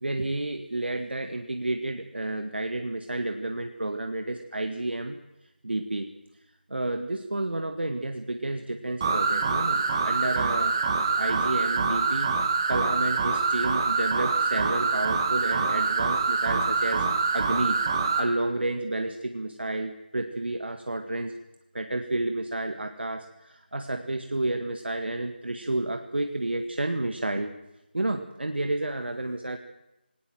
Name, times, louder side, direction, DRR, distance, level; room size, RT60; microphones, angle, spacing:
voice 1, 0.0-5.2 5.6-6.1 6.7-10.8 11.1-17.1 17.3-21.3 21.7-27.5 27.9-29.6, right 2 dB, 75° right, 6 dB, 1.8 m, -31 dB
sound 1, 9.0-18.3, right 4 dB, 25° right, 2.0 m, -25 dB
20.0 x 18.0 x 7.8 m, 0.97 s
figure-of-eight pair, 170°, 6 cm